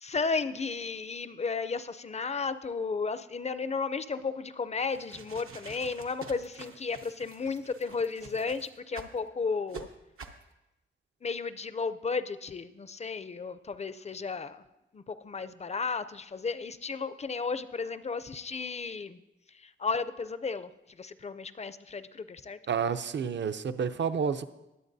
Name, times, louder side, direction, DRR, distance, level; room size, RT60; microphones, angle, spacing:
voice 1, 0.0-9.9 11.2-14.6 14.9-19.2 19.5-20.7 21.0-22.6, left 4 dB, 30° left, 12 dB, 0.4 m, -34 dB
sound 1, 4.8-9.2 9.7-9.8 10.2-10.4, right 5 dB, 85° right, 0.9 m, -47 dB
voice 2, 22.7-24.5, right 6 dB, 60° right, 11 dB, 0.5 m, -30 dB
20.5 x 7.8 x 2.7 m, 0.96 s
wide cardioid pair, 120°, 21 cm